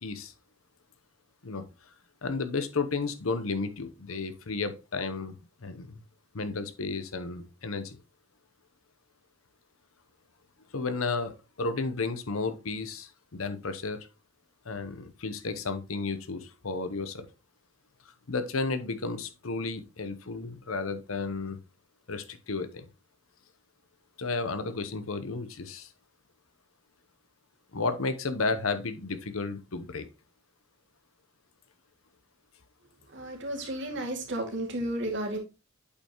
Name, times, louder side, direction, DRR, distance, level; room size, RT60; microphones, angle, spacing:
voice 1, 0.0-0.3 1.4-1.7 2.2-6.0 6.3-8.0 10.7-14.0 14.6-17.3 18.3-21.6 22.1-22.9 24.2-25.9 27.7-30.1, left 3 dB, 85° left, 0.9 m, -33 dB
voice 2, 33.1-35.4, right 1 dB, 60° right, 2.2 m, -33 dB
8.3 x 5.5 x 3.0 m
head